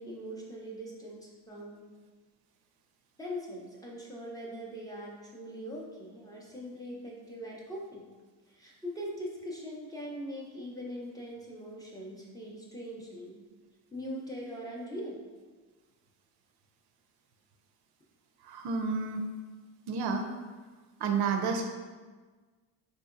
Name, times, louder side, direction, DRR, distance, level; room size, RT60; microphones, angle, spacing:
voice 1, 0.0-1.9 3.2-8.1 8.5-13.4 13.9-15.2, equal, 10° left, -3 dB, 0.5 m, -41 dB
voice 2, 18.4-19.3 19.9-20.3 21.0-21.6, right 5 dB, 65° right, 4 dB, 0.5 m, -30 dB
3.6 x 2.7 x 2.4 m, 1.4 s
cardioid pair, 100°, 41 cm